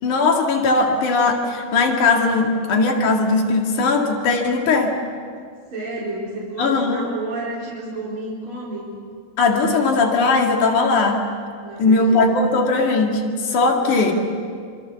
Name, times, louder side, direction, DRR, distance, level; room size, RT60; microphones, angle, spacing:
voice 1, 0.0-5.0 6.6-7.1 9.4-11.2 11.8-14.1, left 3 dB, 90° left, 2 dB, 3.7 m, -19 dB
voice 2, 5.6-8.9 11.6-12.2 13.8-14.1, right 2 dB, 45° right, -7 dB, 5.0 m, -31 dB
27.0 x 26.5 x 7.1 m, 2.2 s
omnidirectional pair, 3.4 m